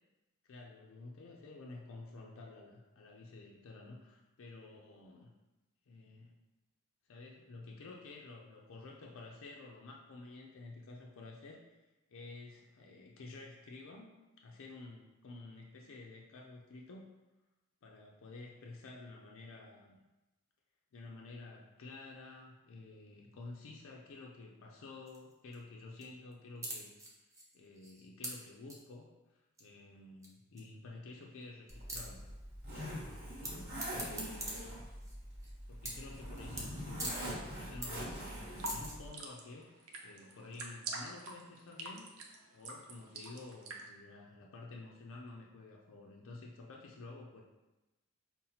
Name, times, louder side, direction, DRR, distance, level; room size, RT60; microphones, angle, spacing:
voice 1, 0.4-5.3 5.9-6.3 7.1-11.6 12.1-14.2 14.4-17.1 17.8-20.0 20.9-26.9 27.5-32.3 32.7-33.0 33.4-34.8 35.7-47.4, left 3 dB, 65° left, -1 dB, 0.4 m, -51 dB
sound 1, 25.1-25.5 25.8-26.0 26.3-26.4 26.6-28.3 28.7-28.8 29.6-29.7 30.2-30.3 30.6-30.7 30.9-31.0 31.4-31.5 31.7-32.0 33.4-33.5 33.8-35.5 35.8-36.1 36.4-36.7 37.0-37.2 37.5-38.1 38.4-38.9, right 1 dB, 15° right, 0.6 m, -42 dB
Zipper (clothing), 31.7-39.1, equal, 50° right, 1.4 m, -44 dB
sound 2, 38.3-43.9, right 2 dB, 75° right, 0.5 m, -46 dB
5.5 x 2.1 x 2.7 m, 1.0 s
head